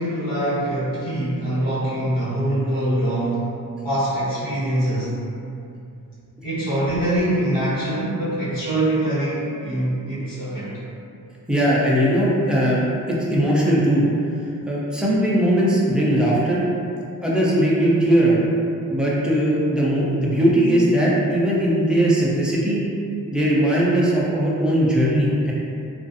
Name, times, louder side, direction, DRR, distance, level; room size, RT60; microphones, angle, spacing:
voice 1, 0.0-3.5 3.8-5.1 6.4-10.7, right 1 dB, 90° left, -12 dB, 1.3 m, -23 dB
voice 2, 11.5-12.8 13.1-14.0 14.7-16.6 17.2-18.4 18.9-22.8 23.3-25.5, right 1 dB, 5° right, -7 dB, 0.3 m, -19 dB
2.4 x 2.4 x 2.5 m, 2.6 s
wide cardioid pair, 165°, 33 cm